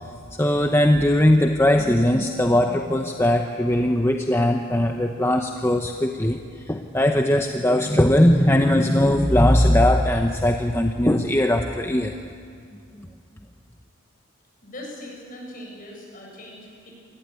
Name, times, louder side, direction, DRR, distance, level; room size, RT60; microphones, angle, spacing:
voice 1, 0.4-12.2 13.0-13.1, left 1 dB, 10° left, 4 dB, 0.8 m, -19 dB
voice 2, 14.6-16.9, left 1 dB, 40° left, -1 dB, 7.2 m, -40 dB
27.0 x 19.0 x 9.3 m, 2.3 s
head